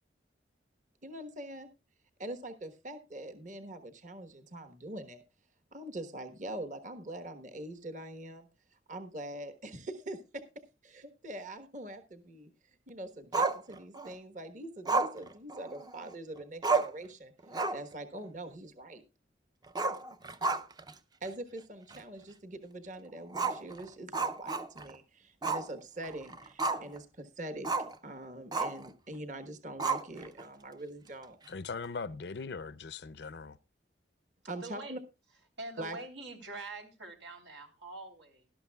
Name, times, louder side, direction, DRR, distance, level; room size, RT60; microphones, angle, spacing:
voice 1, 1.0-1.7 2.2-5.2 5.7-8.5 8.9-10.4 10.8-12.5 12.9-17.3 17.7-19.0 21.2-27.7 28.0-31.4 34.5-35.0 35.8-36.0, right 1 dB, 45° right, 1.3 m, -43 dB
Growling, 13.3-14.1 14.9-16.1 16.4-16.5 16.6-17.1 17.4-17.9 18.2-18.3 19.7-20.9 21.2-21.3 21.9-22.0 23.3-24.9 25.4-25.7 26.0-27.0 27.6-28.0 28.5-28.9 29.8-30.4, right 3 dB, 20° right, 0.5 m, -32 dB
voice 2, 31.5-33.6, left 4 dB, 65° left, 0.5 m, -40 dB
voice 3, 34.6-35.0 35.6-38.5, right 2 dB, 90° right, 3.4 m, -44 dB
18.0 x 12.5 x 2.3 m
head